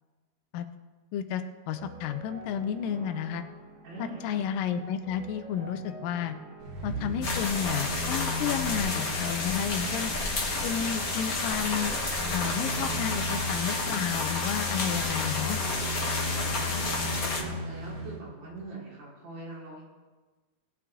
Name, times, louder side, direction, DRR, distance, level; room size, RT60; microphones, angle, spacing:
voice 1, 1.1-3.4 4.0-6.3 6.8-10.1 10.6-11.9 12.3-15.6, left 8 dB, 85° left, 9 dB, 2.3 m, -32 dB
sound 1, 1.6-17.7, right 2 dB, 25° right, 3.6 m, -48 dB
voice 2, 3.8-4.4 16.3-19.8, right 2 dB, 70° right, -6 dB, 4.9 m, -42 dB
sound 2, 6.6-18.2 18.6-18.7, left 2 dB, 85° right, 4.1 m, -36 dB
sound 3, 7.2-17.4, left 3 dB, 60° left, 0.9 m, -31 dB
18.5 x 9.0 x 3.6 m, 1.3 s
omnidirectional pair, 3.8 m